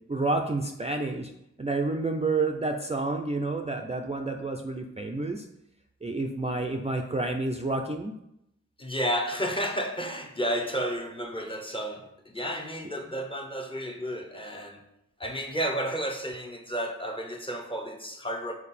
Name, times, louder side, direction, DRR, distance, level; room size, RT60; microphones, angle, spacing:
voice 1, 0.1-1.3 1.6-5.5 6.0-8.1, right 3 dB, 20° right, 0.5 m, -29 dB
voice 2, 8.8-14.8 15.2-18.5, equal, 15° left, 0.9 m, -32 dB
7.1 x 4.5 x 4.2 m
wide cardioid pair, 105°, 30 cm